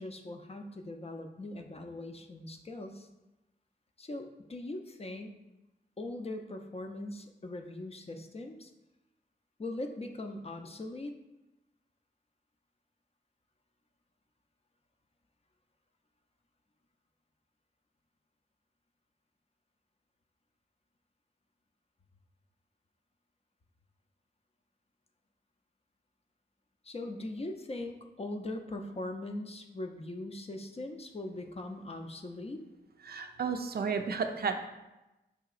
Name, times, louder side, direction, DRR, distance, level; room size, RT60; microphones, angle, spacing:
voice 1, 0.0-3.1 4.0-5.3 6.0-8.7 9.6-11.2 26.8-32.6, left 2 dB, 35° left, 5 dB, 0.4 m, -40 dB
voice 2, 33.1-34.6, right 5 dB, 65° right, 6 dB, 0.4 m, -32 dB
4.7 x 2.8 x 2.4 m, 0.99 s
cardioid pair, 50°, 18 cm